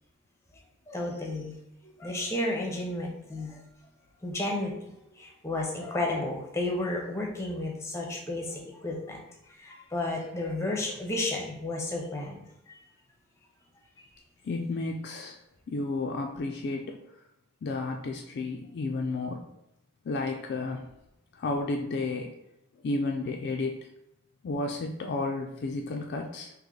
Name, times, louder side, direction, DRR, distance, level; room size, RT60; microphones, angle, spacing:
voice 1, 0.9-1.6 1.8-3.6 4.2-9.2 9.5-12.8 14.0-14.1, left 2 dB, 15° left, 0 dB, 0.6 m, -32 dB
voice 2, 14.4-15.4 15.7-17.0 17.6-19.4 20.0-20.8 21.3-22.3 22.8-23.8 24.4-26.5, left 3 dB, 50° left, 2 dB, 0.3 m, -32 dB
3.1 x 2.9 x 3.8 m, 0.83 s
head